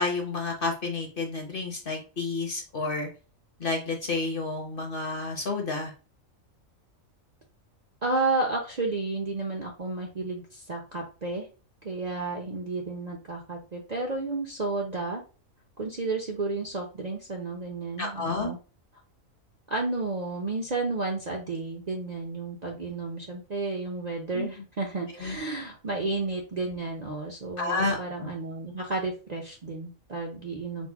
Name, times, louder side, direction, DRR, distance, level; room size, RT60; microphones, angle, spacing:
voice 1, 0.0-3.1 3.6-5.9 18.0-18.5 24.3-24.5 25.1-25.4 27.6-28.3, left 3 dB, 45° left, 2 dB, 1.1 m, -30 dB
voice 2, 8.0-11.5 11.8-15.2 15.8-18.6 19.7-30.9, right 3 dB, 40° right, 0 dB, 0.7 m, -32 dB
4.2 x 2.1 x 4.6 m, 0.34 s
omnidirectional pair, 1.4 m